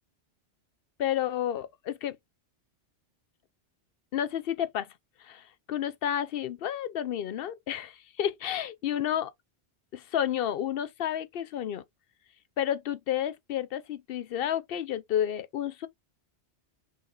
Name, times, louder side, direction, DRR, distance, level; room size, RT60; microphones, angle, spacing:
voice 1, 1.0-2.2 4.1-4.9 5.2-9.3 9.9-11.8 12.6-15.9, left 10 dB, 65° left, 0.7 m, -31 dB
4.7 x 2.4 x 3.8 m
omnidirectional pair, 1.1 m